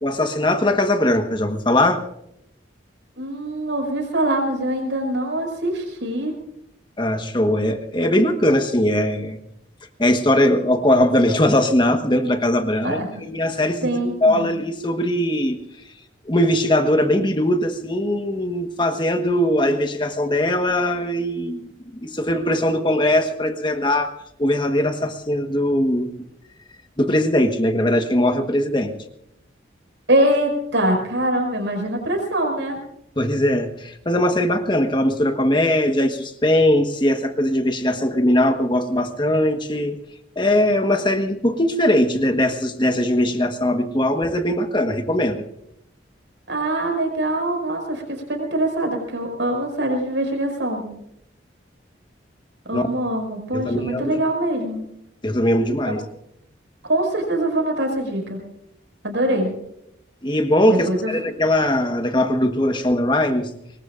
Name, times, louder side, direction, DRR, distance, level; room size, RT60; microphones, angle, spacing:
voice 1, 0.0-2.0 7.0-9.4 10.0-15.6 16.2-24.1 24.4-26.1 27.0-28.9 33.2-40.0 40.4-45.4 52.7-52.9 53.5-54.2 55.2-56.0 60.2-63.5, left 1 dB, 25° left, 6 dB, 1.3 m, -20 dB
voice 2, 3.2-6.3 12.8-13.1 13.8-14.5 30.1-32.8 46.5-50.9 52.7-54.8 55.9-56.0 56.8-58.4 59.0-59.5 60.7-61.2, right 1 dB, 75° right, 2 dB, 5.7 m, -23 dB
24.5 x 21.5 x 2.5 m, 0.78 s
head